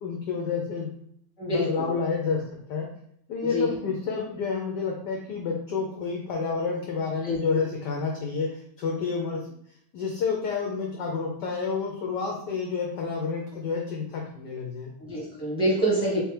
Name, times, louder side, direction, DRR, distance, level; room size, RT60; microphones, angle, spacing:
voice 1, 0.0-0.9 1.5-2.9 3.3-9.4 9.9-14.9, left 5 dB, 75° left, 0 dB, 1.0 m, -29 dB
voice 2, 1.4-1.9 3.5-3.7 7.2-7.4 15.0-16.2, right 1 dB, 5° right, -6 dB, 1.1 m, -26 dB
3.4 x 3.2 x 3.2 m, 0.70 s
omnidirectional pair, 2.3 m